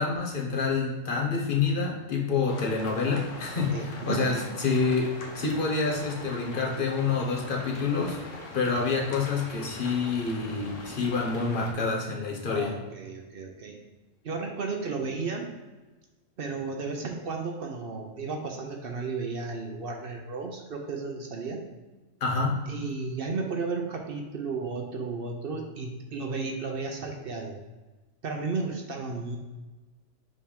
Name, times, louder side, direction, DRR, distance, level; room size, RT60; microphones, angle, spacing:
voice 1, 0.0-8.2 8.5-12.8 22.2-22.6, left 4 dB, 45° left, -1 dB, 1.2 m, -27 dB
sound 1, 2.5-11.7, left 3 dB, 75° left, 1.3 m, -42 dB
voice 2, 3.6-4.4 12.5-13.8 14.2-15.5 16.4-21.6 22.7-27.6 28.2-29.4, right 4 dB, 55° right, 2 dB, 0.8 m, -33 dB
5.4 x 3.4 x 5.1 m, 1.2 s
omnidirectional pair, 1.3 m